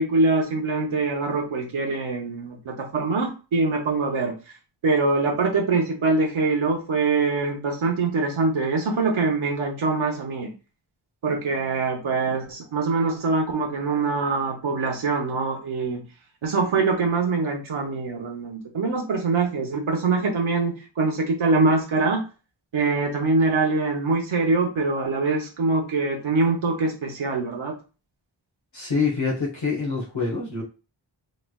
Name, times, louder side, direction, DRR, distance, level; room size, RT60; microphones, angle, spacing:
voice 1, 0.0-4.3 4.8-10.5 11.2-16.0 16.4-22.2 22.7-27.7, right 3 dB, 85° right, 0 dB, 0.8 m, -24 dB
voice 2, 28.7-30.6, left 4 dB, 70° left, -5 dB, 1.1 m, -26 dB
3.2 x 3.1 x 2.2 m, 0.32 s
wide cardioid pair, 45°, 47 cm